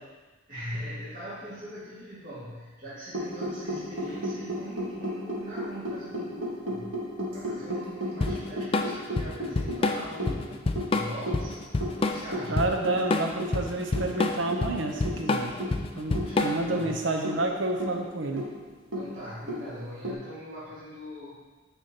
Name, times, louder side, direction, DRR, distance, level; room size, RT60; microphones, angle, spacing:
voice 1, 0.5-7.0 7.3-10.6 10.9-11.6 12.0-12.7 16.2-17.0 18.9-21.4, equal, 40° right, -10 dB, 2.0 m, -41 dB
sound 1, 3.1-20.1, equal, 80° right, 1.6 m, -35 dB
Drum kit / Drum, 8.2-16.8, left 3 dB, 30° left, 0.4 m, -28 dB
voice 2, 12.5-15.5 15.9-18.5, right 2 dB, 65° right, 3 dB, 0.8 m, -29 dB
9.3 x 5.1 x 2.9 m, 1.3 s
head